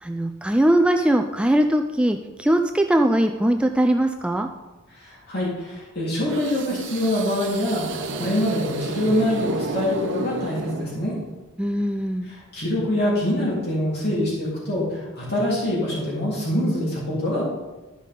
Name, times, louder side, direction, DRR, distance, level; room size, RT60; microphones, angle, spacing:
voice 1, 0.0-4.5 11.6-12.3, right 1 dB, 5° right, 5 dB, 0.3 m, -21 dB
voice 2, 5.0-11.1 12.2-17.4, left 1 dB, 50° left, -7 dB, 3.4 m, -25 dB
sound 1, 6.3-11.3, right 2 dB, 60° right, 0.8 m, -32 dB
13.5 x 5.5 x 3.8 m, 1.1 s
head